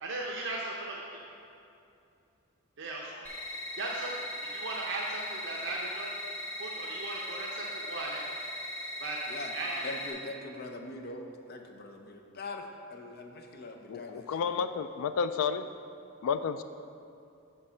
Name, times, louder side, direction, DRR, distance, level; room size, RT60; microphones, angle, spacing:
voice 1, 0.0-1.1 2.8-3.3 3.8-4.2 4.4-6.1 6.6-8.2 9.0-9.2 9.5-9.9, right 2 dB, 60° right, -2 dB, 0.7 m, -37 dB
sound 1, 3.2-10.1, equal, 10° left, 1.7 m, -39 dB
voice 2, 9.8-11.2 11.5-12.6 12.9-14.2, left 2 dB, 50° left, 4 dB, 0.7 m, -42 dB
voice 3, 13.9-15.7 16.2-16.6, left 6 dB, 80° left, 11 dB, 0.3 m, -31 dB
9.7 x 3.4 x 6.2 m, 2.6 s
head